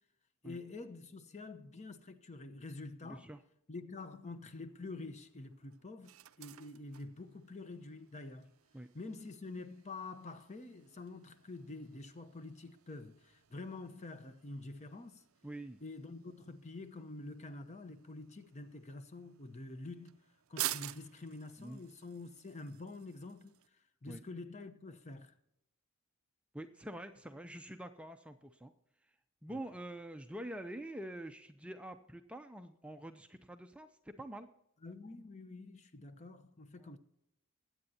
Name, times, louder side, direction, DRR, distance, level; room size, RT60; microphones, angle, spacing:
voice 1, 0.4-3.3 3.7-8.6 8.9-15.2 15.8-20.2 20.5-23.5 24.0-25.3 29.5-29.6 34.8-37.0, left 3 dB, 30° left, 0.8 m, -47 dB
voice 2, 3.0-3.4 8.7-8.9 15.4-15.8 21.6-21.8 24.0-24.2 26.5-28.7 29.0-29.1 29.4-34.5 36.8-37.0, right 1 dB, 5° right, 0.5 m, -46 dB
sound 1, 4.1-23.7, right 14 dB, 70° right, 0.5 m, -50 dB
21.5 x 8.7 x 2.8 m
head